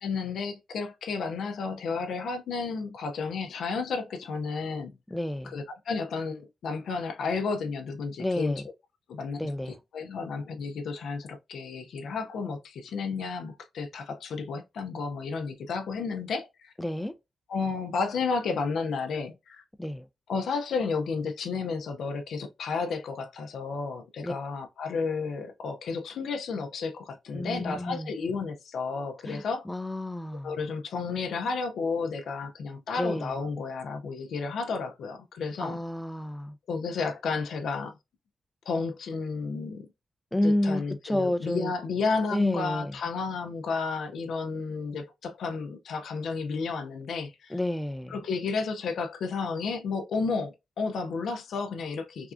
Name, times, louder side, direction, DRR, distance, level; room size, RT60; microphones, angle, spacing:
voice 1, 0.0-4.9 5.5-8.5 9.1-9.5 9.9-16.7 17.5-19.6 20.3-29.7 30.4-35.8 36.7-37.9 38.7-39.9 40.4-47.6 48.1-52.3, left 4 dB, 85° left, 0.4 m, -32 dB
voice 2, 5.1-5.6 8.2-8.6 9.4-9.8 16.8-17.1 19.8-20.1 24.2-24.3 27.3-28.1 29.2-30.5 33.0-33.4 35.6-36.6 40.3-41.7 42.3-42.9 47.5-48.2, left 1 dB, 10° left, 0.3 m, -30 dB
3.3 x 2.4 x 2.4 m
cardioid pair, 95°, 0 cm